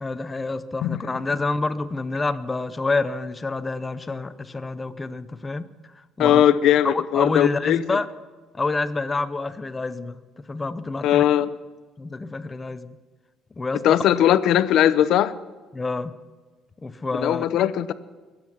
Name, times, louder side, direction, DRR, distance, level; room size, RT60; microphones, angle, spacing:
voice 1, 0.0-5.7 6.2-6.4 6.8-8.1 8.5-11.2 12.0-13.0 13.6-14.0 15.7-16.1 16.8-17.4, left 3 dB, 15° left, 12 dB, 0.7 m, -28 dB
voice 2, 6.2-8.0 11.0-11.5 13.8-15.3 17.2-17.9, left 11 dB, 65° left, 13 dB, 0.7 m, -19 dB
23.0 x 9.1 x 5.8 m, 1.4 s
cardioid pair, 160°, 0 cm